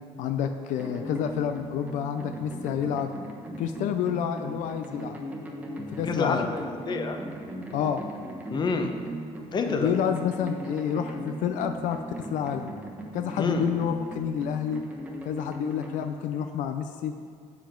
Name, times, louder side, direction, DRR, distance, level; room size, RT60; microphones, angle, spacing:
voice 1, 0.2-3.1 3.6-5.2 6.0-6.5 7.7-8.1 9.8-12.0 12.3-12.7 13.1-14.8 15.3-17.1, left 8 dB, 75° left, 7 dB, 0.4 m, -29 dB
sound 1, 0.8-16.1, right 1 dB, 10° right, 1.0 m, -38 dB
voice 2, 6.0-7.2 8.5-8.9 9.5-9.9 13.4-13.6, left 4 dB, 35° left, 5 dB, 0.8 m, -27 dB
7.3 x 7.1 x 4.5 m, 2.4 s
cardioid pair, 120°, 13 cm